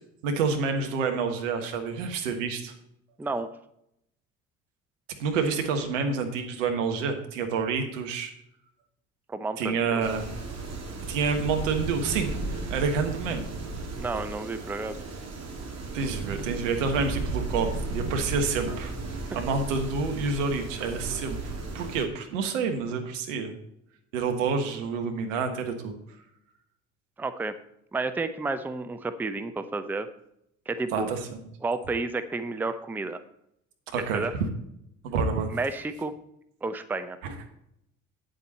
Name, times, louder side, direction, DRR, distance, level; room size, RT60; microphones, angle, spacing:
voice 1, 0.2-2.7 5.2-8.3 9.6-10.3 11.1-12.3 12.7-13.5 13.8-13.9 15.9-18.9 19.3-23.5 24.1-25.9 30.9-31.4 33.9-34.5 35.0-35.5 37.2-37.4, right 5 dB, 70° right, 5 dB, 1.4 m, -28 dB
voice 2, 3.2-3.5 9.3-10.1 13.9-15.0 19.3-19.4 27.2-27.6 27.9-30.1 30.7-31.1 31.6-33.2 34.1-34.3 35.5-36.1 36.6-37.2, right 3 dB, 5° right, 11 dB, 0.6 m, -31 dB
sound 1, 10.0-22.0, right 3 dB, 40° right, 2.5 m, -35 dB
9.2 x 7.8 x 4.2 m, 0.78 s
figure-of-eight pair, 55°, 39 cm